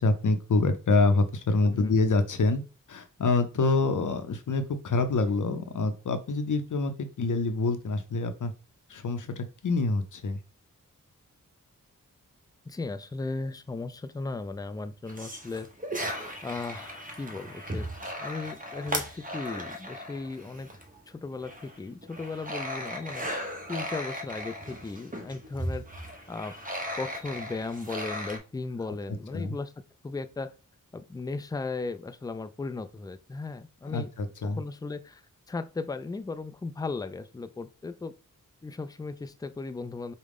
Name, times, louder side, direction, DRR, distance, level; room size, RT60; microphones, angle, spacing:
voice 1, 0.0-2.6 2.9-8.5 8.9-10.4 29.3-29.6 33.9-34.6, left 3 dB, 65° left, 0.7 m, -26 dB
voice 2, 12.7-15.7 16.4-17.9 18.2-20.7 21.1-23.3 23.7-25.8 26.3-26.6 26.9-29.7 30.0-30.5 30.9-34.1 34.4-35.2 35.5-38.1 38.6-40.1, left 3 dB, 10° left, 0.4 m, -36 dB
sound 1, 15.1-21.0 21.4-28.4, equal, 25° right, 0.9 m, -37 dB
4.9 x 2.2 x 3.5 m
cardioid pair, 40°, 33 cm